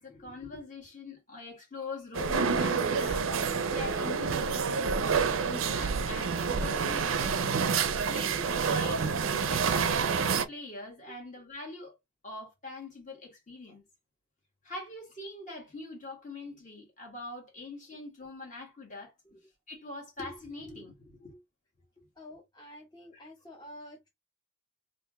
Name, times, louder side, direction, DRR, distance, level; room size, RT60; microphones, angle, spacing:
voice 1, 0.0-3.3 3.6-7.5 8.1-10.1 10.3-12.0 12.2-13.8 14.6-19.1 19.7-21.4, left 2 dB, 40° left, 1.7 m, -43 dB
sound 1, 2.1-10.5, right 5 dB, 90° right, 0.5 m, -28 dB
voice 2, 22.2-24.1, left 1 dB, 20° left, 0.8 m, -49 dB
3.5 x 2.5 x 3.0 m
head